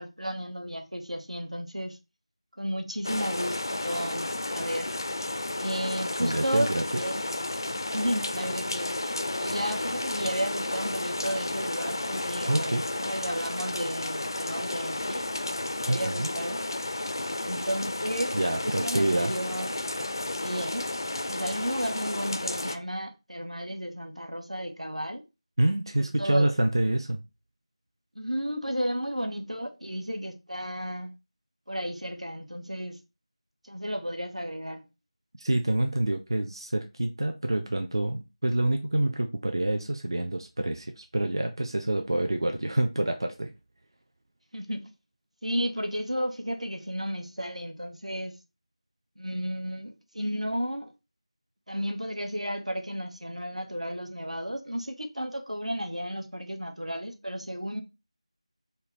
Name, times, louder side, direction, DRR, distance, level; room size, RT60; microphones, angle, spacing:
voice 1, 0.0-2.0 2.6-4.9 5.6-7.2 7.7-8.9 9.4-15.3 15.8-16.7 17.4-18.4 18.6-19.7 20.4-20.9 21.3-25.2 26.0-26.5 28.1-31.1 31.7-33.0 33.6-34.8 44.5-44.9 45.4-48.3 49.2-50.9 51.7-57.8, equal, 90° right, 1.1 m, -33 dB
sound 1, 3.0-22.8, left 2 dB, 40° left, 0.4 m, -32 dB
voice 2, 6.2-6.8 12.5-12.8 15.9-16.3 18.3-19.3 25.6-27.2 35.4-43.5, right 1 dB, 45° right, 0.5 m, -27 dB
4.5 x 2.2 x 3.3 m
figure-of-eight pair, 170°, 3 cm